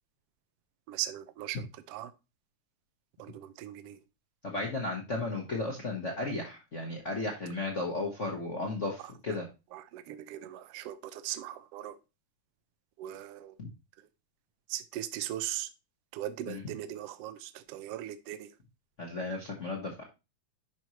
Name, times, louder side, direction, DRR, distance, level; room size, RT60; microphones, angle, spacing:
voice 1, 0.9-2.1 3.2-4.0 9.3-9.4 9.7-12.0 13.0-13.6 14.0-14.1 14.7-15.7 16.1-18.5, right 13 dB, 75° right, 1.5 m, -39 dB
voice 2, 4.4-9.5 13.6-13.7 16.5-16.6 19.0-20.0, left 2 dB, 50° left, 0.8 m, -34 dB
10.5 x 5.4 x 3.1 m
omnidirectional pair, 3.3 m